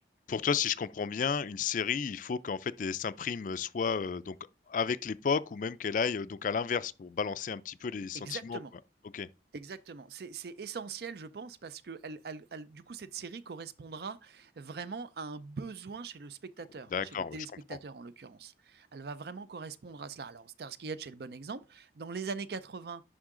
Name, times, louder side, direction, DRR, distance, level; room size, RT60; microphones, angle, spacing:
voice 1, 0.3-4.4 4.7-8.6 9.1-9.3 16.9-17.5, left 6 dB, 45° left, 0.3 m, -32 dB
voice 2, 8.1-8.7 9.5-23.0, right 4 dB, 60° right, 0.5 m, -42 dB
11.0 x 3.7 x 3.7 m
head